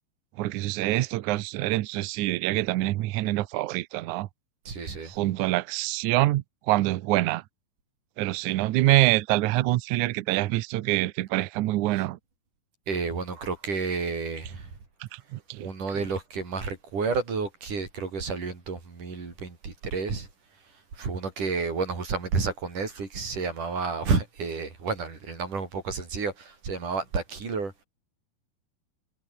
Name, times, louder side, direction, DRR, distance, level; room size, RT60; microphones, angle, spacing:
voice 1, 0.4-4.3 5.0-7.4 8.2-12.2 15.0-15.7, right 17 dB, 75° right, 1.8 m, -25 dB
voice 2, 4.7-5.1 12.9-14.7 15.6-20.3 21.0-27.7, right 4 dB, 55° right, 7.1 m, -30 dB
omnidirectional pair, 4.4 m